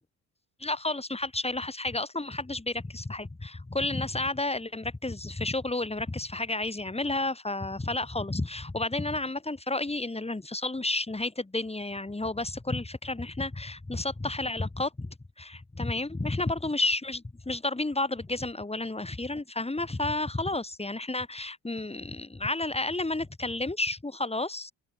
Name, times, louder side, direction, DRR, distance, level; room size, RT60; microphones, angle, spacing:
voice 1, 0.6-24.7, left 2 dB, 15° left, 2.9 m, -31 dB
open air
supercardioid pair, 65°, 38 cm